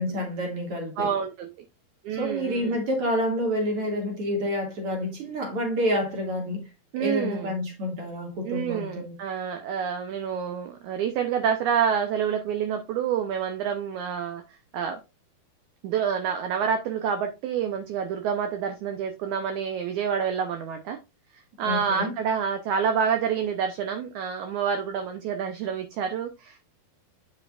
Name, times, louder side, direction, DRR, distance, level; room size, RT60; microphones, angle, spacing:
voice 1, 0.0-1.1 2.2-6.7 7.0-9.1 21.6-22.1, equal, 45° right, 2.6 m, -28 dB
voice 2, 1.0-1.5 2.0-2.8 6.9-7.6 8.4-14.4 14.7-15.0 15.8-21.0 21.6-26.6, right 7 dB, 75° right, 1.8 m, -28 dB
9.3 x 5.8 x 2.4 m
omnidirectional pair, 4.3 m